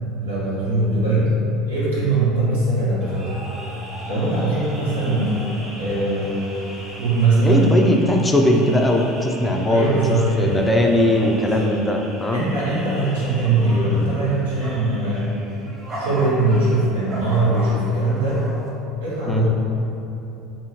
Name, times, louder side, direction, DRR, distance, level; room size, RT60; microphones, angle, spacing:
voice 1, 0.2-1.4 1.7-3.4 4.1-5.4 5.8-6.4 6.9-7.6 9.7-10.6 11.4-11.7 12.3-15.3 15.9-18.4 19.0-19.5, right 2 dB, 85° right, -8 dB, 1.0 m, -21 dB
sound 1, 3.0-18.7, right 1 dB, 30° right, 0.9 m, -37 dB
voice 2, 7.4-10.0 10.4-12.4 19.3-19.4, left 1 dB, 15° left, 1 dB, 0.4 m, -19 dB
3.6 x 2.7 x 3.0 m, 2.9 s
hypercardioid pair, 75°, 0 cm